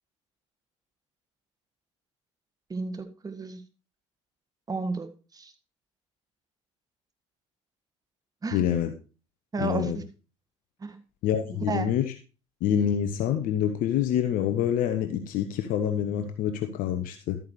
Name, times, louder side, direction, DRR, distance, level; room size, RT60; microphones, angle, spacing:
voice 1, 2.7-3.6 4.7-5.1 5.3-5.5 8.4-8.6 9.5-10.0 10.8-11.0 11.7-11.9, right 3 dB, 25° right, 9 dB, 1.6 m, -32 dB
voice 2, 8.5-8.9 9.6-10.0 11.2-12.1 12.6-17.4, left 9 dB, 60° left, 7 dB, 1.0 m, -26 dB
12.5 x 9.1 x 3.2 m, 0.35 s
hypercardioid pair, 70°, 16 cm